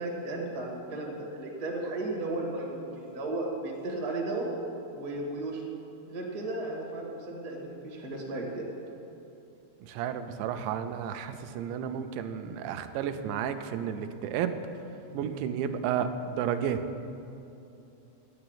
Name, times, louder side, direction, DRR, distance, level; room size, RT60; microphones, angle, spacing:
voice 1, 0.0-4.5 4.9-5.6 6.1-8.7, right 2 dB, 60° right, -2 dB, 0.9 m, -34 dB
voice 2, 9.8-14.6 15.1-16.8, right 8 dB, 85° right, 8 dB, 2.9 m, -32 dB
9.8 x 7.9 x 8.8 m, 2.8 s
omnidirectional pair, 5.1 m